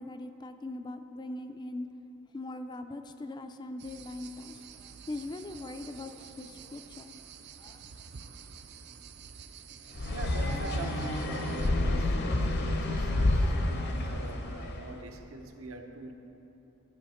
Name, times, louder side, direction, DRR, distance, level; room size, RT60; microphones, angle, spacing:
voice 1, 0.0-1.9 2.3-7.2 7.6-7.8, left 2 dB, 20° left, 8 dB, 0.3 m, -41 dB
sound 1, 3.8-11.7, right 4 dB, 55° right, 0.4 m, -47 dB
sound 2, 10.0-14.8, left 1 dB, 50° left, 0.6 m, -29 dB
voice 2, 10.1-16.1, right 2 dB, 75° right, 4 dB, 0.8 m, -44 dB
13.5 x 5.6 x 4.3 m, 3.0 s
head